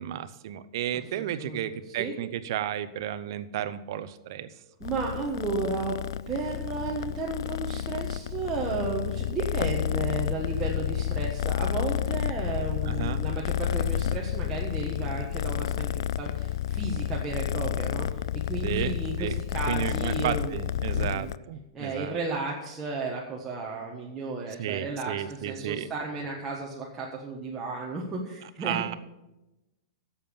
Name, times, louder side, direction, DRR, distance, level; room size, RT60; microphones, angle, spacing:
voice 1, 0.0-4.5 12.8-13.2 18.6-18.9 19.2-19.4 19.7-22.2 24.6-25.9 28.4-28.9, right 11 dB, 55° right, 13 dB, 0.8 m, -33 dB
voice 2, 1.2-1.6 2.0-2.1 4.8-6.0 6.3-18.1 18.3-20.6 20.9-21.3 21.7-29.0, right 3 dB, 15° right, -4 dB, 1.4 m, -33 dB
Purr, 4.8-21.4, left 10 dB, 70° left, 0.3 m, -30 dB
11.0 x 7.3 x 7.0 m, 0.96 s
supercardioid pair, 155°, 3 cm